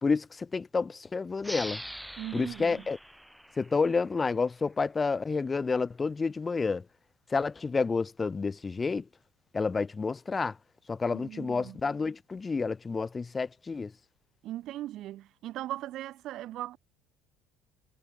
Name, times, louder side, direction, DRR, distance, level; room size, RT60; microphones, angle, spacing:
voice 1, 0.0-1.8 2.3-3.0 3.6-6.8 7.3-9.0 9.5-10.5 10.9-13.9, left 4 dB, 15° left, 0.4 m, -29 dB
sound 1, 1.4-4.7, equal, ahead, 5.5 m, -43 dB
voice 2, 2.2-2.9 11.1-11.8 14.4-16.8, right 14 dB, 50° right, 3.2 m, -39 dB
cardioid pair, 155°, 0 cm